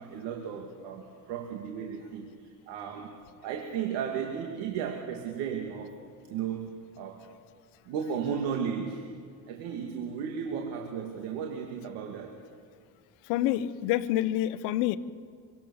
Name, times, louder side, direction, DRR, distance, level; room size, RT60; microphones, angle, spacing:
voice 1, 0.0-6.0 6.3-7.2 7.9-9.0 9.5-12.4, right 7 dB, 85° right, 3 dB, 2.7 m, -35 dB
voice 2, 13.3-15.0, left 13 dB, 90° left, 14 dB, 1.1 m, -27 dB
25.5 x 25.0 x 7.2 m, 2.1 s
cardioid pair, 125°, 41 cm